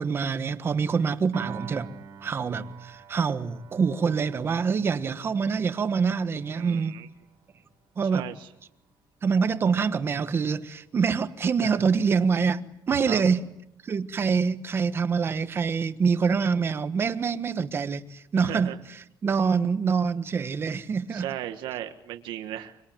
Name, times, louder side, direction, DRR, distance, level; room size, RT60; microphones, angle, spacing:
voice 1, 0.0-1.9 2.2-7.0 8.0-8.3 9.2-12.6 12.9-13.4 13.8-21.3, right 5 dB, 30° right, 1.3 m, -25 dB
Piano, 1.3-7.7, right 7 dB, 60° right, 2.7 m, -45 dB
voice 2, 6.5-7.1 8.1-8.5 11.6-11.7 13.1-13.2 18.3-18.8 21.1-22.8, right 12 dB, 85° right, 1.6 m, -36 dB
25.0 x 24.5 x 9.1 m
cardioid pair, 160°, 8 cm